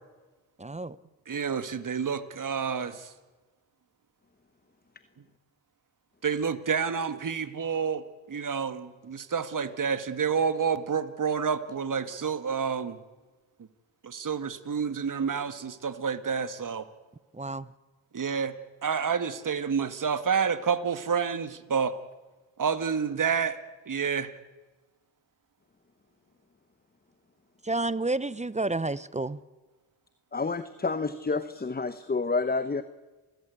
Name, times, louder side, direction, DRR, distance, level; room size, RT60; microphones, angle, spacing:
voice 1, 0.6-1.0 17.3-17.7 27.6-29.4, right 2 dB, 15° right, 18 dB, 0.8 m, -30 dB
voice 2, 1.3-3.1 6.2-13.0 14.0-16.8 18.1-18.6 18.8-21.9 22.6-23.6 23.9-24.3, right 6 dB, 40° right, 11 dB, 1.9 m, -29 dB
voice 3, 30.3-32.8, left 4 dB, 20° left, 12 dB, 1.0 m, -29 dB
29.5 x 14.5 x 8.5 m, 1.3 s
supercardioid pair, 60°, 48 cm